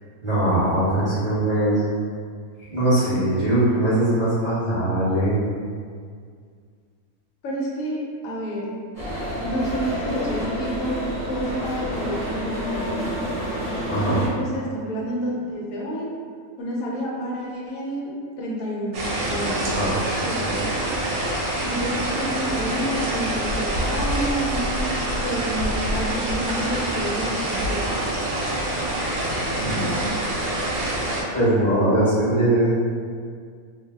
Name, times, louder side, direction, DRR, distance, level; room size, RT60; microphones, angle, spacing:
voice 1, 0.2-1.8 2.7-5.4 13.9-14.2 19.7-19.9 20.4-20.5 29.5-29.8 31.3-32.7, right 1 dB, 35° right, -13 dB, 0.6 m, -21 dB
voice 2, 7.4-8.0 8.2-8.7 9.4-13.0 14.0-16.1 16.6-19.8 20.2-20.7 21.6-24.9 25.2-28.0 29.7-30.1, right 1 dB, 70° left, -4 dB, 1.0 m, -29 dB
sound 1, 8.9-14.3, equal, 30° left, 1.1 m, -29 dB
sound 2, 18.9-31.2, right 1 dB, 80° right, 1.1 m, -26 dB
2.7 x 2.0 x 3.3 m, 2.1 s
omnidirectional pair, 1.6 m